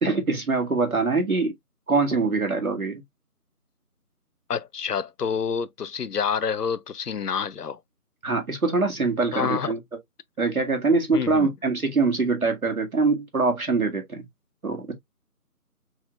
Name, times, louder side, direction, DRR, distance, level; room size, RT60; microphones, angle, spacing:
voice 1, 0.0-1.5 1.9-3.0 8.2-9.8 10.4-14.2 14.6-14.9, right 3 dB, 65° right, 1.9 m, -23 dB
voice 2, 4.5-7.8 9.3-9.7 11.1-11.5, left 6 dB, 85° left, 0.7 m, -28 dB
5.6 x 2.9 x 2.3 m
figure-of-eight pair, 165°, 46 cm